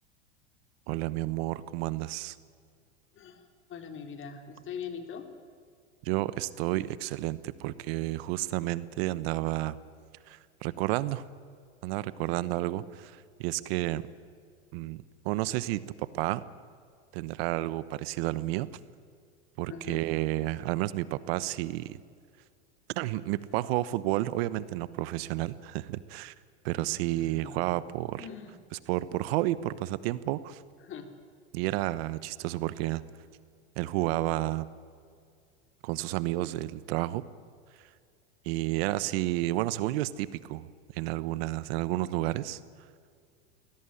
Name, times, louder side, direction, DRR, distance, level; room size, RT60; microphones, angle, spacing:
voice 1, 0.9-2.4 6.0-9.8 10.3-11.2 11.8-14.0 14.7-16.4 17.1-18.7 19.6-22.0 23.0-26.3 26.6-28.3 28.9-30.6 31.5-33.0 33.8-34.7 35.8-37.2 38.4-40.7 40.9-42.6, right 17 dB, 65° right, 17 dB, 1.1 m, -31 dB
voice 2, 3.7-5.3 19.7-20.0 27.1-27.6 28.2-28.5 30.8-31.1, left 7 dB, 35° left, 7 dB, 3.3 m, -41 dB
21.5 x 17.5 x 10.0 m, 2.2 s
hypercardioid pair, 105°, 33 cm